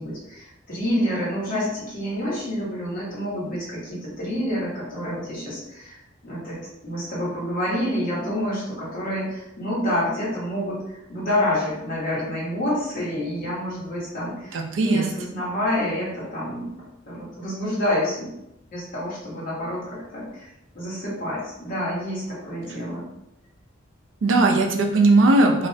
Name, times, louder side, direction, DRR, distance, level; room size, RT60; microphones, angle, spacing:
voice 1, 0.0-6.0 6.2-6.6 6.8-16.7 17.1-18.3 18.7-20.5 20.7-23.0, left 1 dB, 45° left, -7 dB, 1.1 m, -28 dB
voice 2, 14.5-15.1 24.2-25.7, right 2 dB, 65° right, 3 dB, 0.4 m, -18 dB
2.4 x 2.0 x 2.6 m, 0.83 s
head